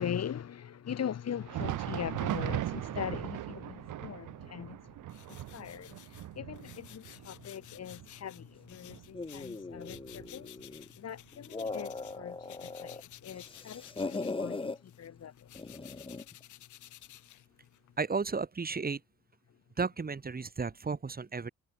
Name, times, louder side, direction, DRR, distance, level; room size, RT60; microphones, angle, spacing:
voice 1, 0.0-4.8 5.3-10.5 10.9-15.6, left 8 dB, 55° left, 4.7 m, -41 dB
Thunder, 1.3-10.8 11.1-11.3 12.0-12.1 13.1-13.2, right 14 dB, 80° right, 4.2 m, -39 dB
sound 1, 5.1-12.2 12.4-17.9, left 13 dB, 80° left, 4.1 m, -54 dB
sound 2, 9.1-10.9 11.3-13.0 13.3-14.8 15.6-16.3, left 3 dB, 15° left, 1.5 m, -39 dB
voice 2, 18.0-19.0 19.8-21.5, right 4 dB, 30° right, 3.7 m, -33 dB
cardioid pair, 90°, 30 cm